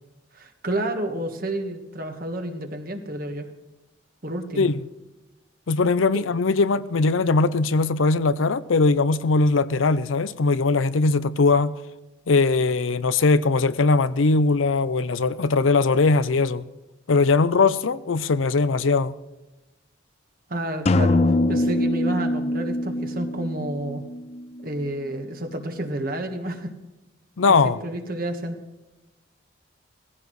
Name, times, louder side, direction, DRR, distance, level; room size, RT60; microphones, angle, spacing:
voice 1, 0.3-3.5 4.2-4.7 6.1-6.2 20.5-24.0 24.6-26.7 27.5-28.6, right 1 dB, 45° right, 1.5 m, -30 dB
voice 2, 5.7-11.8 12.3-16.7 17.1-19.1 27.4-27.8, left 3 dB, 85° left, 0.6 m, -20 dB
sound 1, 20.9-24.7, left 2 dB, 35° left, 0.4 m, -23 dB
18.5 x 15.5 x 3.2 m
head